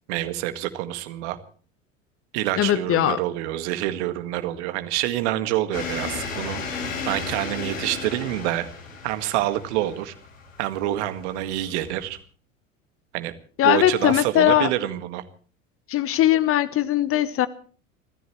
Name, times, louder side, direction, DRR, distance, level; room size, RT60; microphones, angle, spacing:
voice 1, 0.1-1.4 2.3-6.6 7.1-8.7 9.0-10.1 10.6-12.2 13.1-13.3 13.6-15.2, right 14 dB, 55° right, 2.0 m, -27 dB
voice 2, 2.6-3.2 13.6-14.7 15.9-17.5, left 12 dB, 35° left, 1.1 m, -20 dB
sound 1, 5.7-12.2, left 4 dB, 75° left, 5.1 m, -34 dB
29.5 x 14.0 x 3.2 m
figure-of-eight pair, 75°, 40 cm